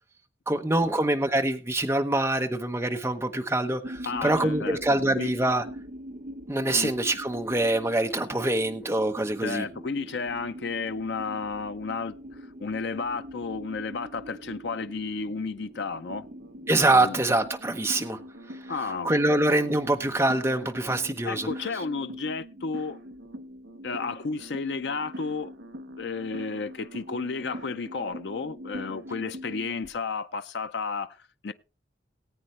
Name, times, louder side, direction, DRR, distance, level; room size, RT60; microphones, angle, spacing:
voice 1, 0.5-5.6 6.5-9.7 16.7-18.2 19.0-21.5, right 1 dB, 15° right, 1.0 m, -25 dB
sound 1, 3.8-17.6, equal, 45° right, 1.1 m, -43 dB
voice 2, 4.0-5.3 6.6-6.9 9.4-16.3 16.9-17.2 18.7-19.5 21.2-23.0 23.8-25.5 25.9-31.5, left 4 dB, 75° left, 0.5 m, -33 dB
sound 2, 16.1-29.9, equal, 85° right, 1.2 m, -42 dB
19.0 x 8.6 x 3.2 m
head